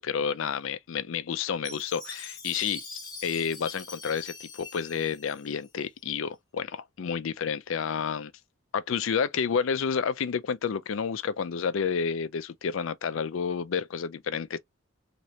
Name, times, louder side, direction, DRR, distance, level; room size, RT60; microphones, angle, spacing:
voice 1, 0.0-2.8 3.2-8.3 8.7-14.6, left 6 dB, 70° left, 0.4 m, -30 dB
Chime, 1.6-6.0, left 3 dB, 20° left, 1.0 m, -43 dB
3.0 x 2.8 x 3.0 m
head